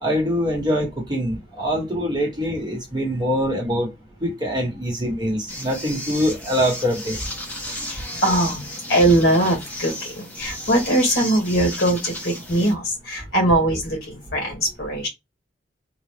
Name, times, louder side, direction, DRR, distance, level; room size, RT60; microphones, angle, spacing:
voice 1, 0.0-3.9 4.2-7.2, equal, 25° right, 1.2 m, -24 dB
sound 1, 5.5-12.7, left 1 dB, 10° left, 1.0 m, -34 dB
voice 2, 7.9-15.1, right 1 dB, 55° left, 2.0 m, -21 dB
3.8 x 2.4 x 3.3 m
head